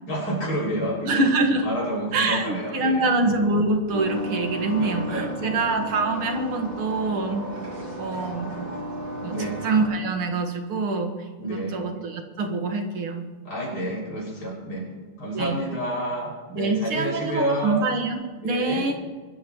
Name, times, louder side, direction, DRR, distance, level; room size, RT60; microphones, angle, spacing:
voice 1, 0.1-1.2 1.6-3.1 4.8-5.6 9.3-9.6 11.4-11.8 13.5-14.8 15.2-17.8 18.4-18.9, right 1 dB, 75° left, -4 dB, 7.1 m, -29 dB
voice 2, 1.0-1.7 2.1-7.5 8.0-8.5 9.2-9.3 9.6-11.1 11.5-13.2 15.3-15.6 16.5-18.2 18.4-19.0, right 3 dB, 80° right, 4 dB, 2.5 m, -25 dB
sound 1, 3.9-9.8, right 1 dB, 60° right, 4.5 m, -34 dB
24.5 x 14.0 x 3.1 m, 1.5 s
omnidirectional pair, 2.3 m